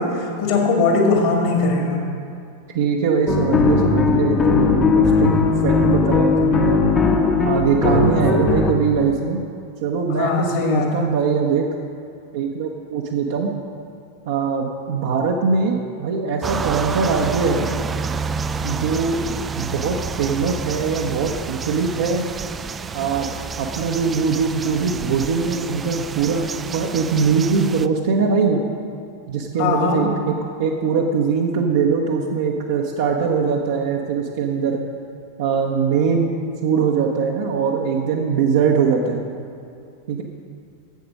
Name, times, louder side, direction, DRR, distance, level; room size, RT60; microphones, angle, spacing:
voice 1, 0.0-2.0 7.9-8.1 10.1-11.1 29.6-30.1, left 3 dB, 50° left, 1 dB, 1.9 m, -20 dB
voice 2, 2.7-6.9 7.4-9.4 9.8-11.7 12.3-13.5 14.3-17.7 18.6-19.2 19.6-22.2 22.9-23.3 23.6-28.6 29.3-34.8 35.4-39.2 40.1-40.2, right 5 dB, 55° right, -1 dB, 0.8 m, -21 dB
sound 1, 3.3-8.7, left 5 dB, 20° left, 0.9 m, -18 dB
sound 2, 16.4-27.9, right 5 dB, 20° right, 0.3 m, -29 dB
9.2 x 7.7 x 6.3 m, 2.4 s
figure-of-eight pair, 90°, 0 cm